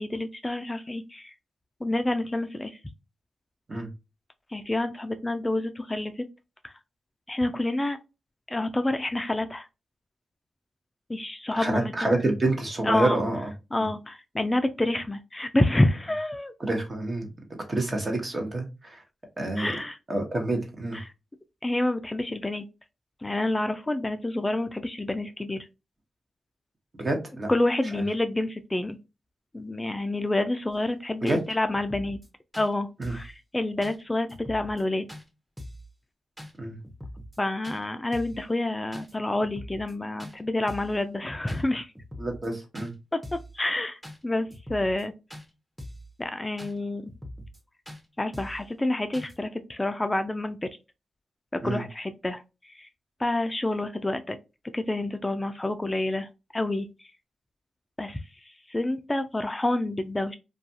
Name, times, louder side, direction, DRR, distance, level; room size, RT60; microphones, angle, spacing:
voice 1, 0.0-1.3 1.8-2.8 4.5-6.2 6.6-6.7 7.3-8.0 8.5-9.7 11.1-12.1 12.8-13.2 13.7-16.5 19.6-20.0 20.9-21.0 21.6-22.6 23.2-25.7 27.5-29.0 29.5-32.2 32.6-35.1 37.4-41.9 43.1-43.2 43.5-45.1 46.2-47.0 48.2-50.7 51.5-52.4 52.7-52.9 53.2-54.4 54.7-56.9 58.0-60.4, left 1 dB, 20° left, 8 dB, 0.3 m, -28 dB
voice 2, 11.5-13.5 16.6-17.3 17.7-19.0 19.4-19.7 20.1-21.0 27.0-27.5 27.9-28.0 31.2-31.4 33.0-33.2 36.6-36.8 42.2-42.9 51.6-51.8, right 2 dB, 40° right, 3 dB, 0.9 m, -28 dB
sound 1, 30.7-30.8 31.3-31.4 31.7-32.3 32.5-32.7 33.0-33.3 33.8-34.0 34.3-34.8 35.1-35.2 35.6-35.9 36.4-36.5 36.8-37.4 37.6-37.8 38.1-38.4 38.9-39.1 39.4-39.9 40.2-40.3 40.7-41.0 41.5-41.6 42.0-42.5 42.7-42.9 43.2-43.5 44.0-44.2 44.5-45.0 45.3-45.5 45.8-46.1 46.6-46.7 47.1-47.6 47.9-48.0 48.3-48.6 49.1-49.3, left 1 dB, 5° right, 0.7 m, -42 dB
2.4 x 2.3 x 2.7 m, 0.27 s
supercardioid pair, 50°, 0 cm